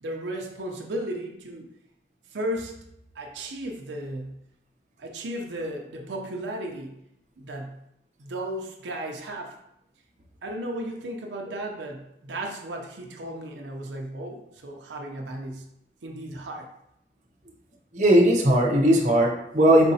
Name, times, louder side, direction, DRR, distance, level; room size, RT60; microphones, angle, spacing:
voice 1, 0.0-1.7 2.3-2.8 3.1-4.4 5.0-7.0 7.4-7.8 8.2-9.6 10.4-15.7 16.0-16.7, right 1 dB, 85° right, 1 dB, 0.6 m, -35 dB
voice 2, 17.9-19.9, right 1 dB, 45° right, -1 dB, 0.7 m, -18 dB
4.5 x 4.2 x 2.7 m, 0.78 s
head